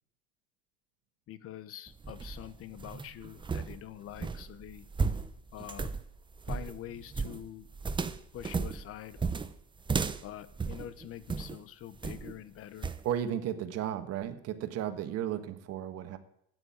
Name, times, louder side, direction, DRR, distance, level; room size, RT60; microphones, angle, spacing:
voice 1, 1.3-4.9 5.5-5.9 6.5-7.7 8.3-9.2 10.2-12.9, left 11 dB, 50° left, 16 dB, 1.2 m, -45 dB
sound 1, 1.9-11.6 12.0-12.4 12.8-13.1, right 4 dB, 15° right, 0.8 m, -35 dB
voice 2, 13.0-16.2, right 10 dB, 55° right, 9 dB, 1.6 m, -34 dB
12.5 x 9.4 x 8.8 m, 0.70 s
supercardioid pair, 110°, 30 cm